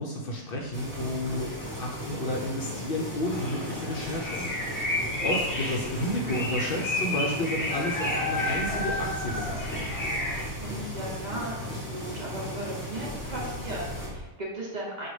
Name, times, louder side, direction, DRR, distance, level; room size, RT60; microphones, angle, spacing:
voice 1, 0.0-9.9, left 1 dB, 60° left, -1 dB, 0.7 m, -32 dB
sound 1, 0.5-14.2, left 2 dB, 70° right, 1.0 m, -42 dB
sound 2, 0.7-14.1, equal, 10° right, 0.8 m, -38 dB
sound 3, 3.3-10.4, left 1 dB, 20° left, 0.7 m, -31 dB
voice 2, 5.2-5.5 10.6-15.1, right 1 dB, 45° right, -4 dB, 0.6 m, -37 dB
5.0 x 2.3 x 3.1 m, 1.1 s
omnidirectional pair, 1.2 m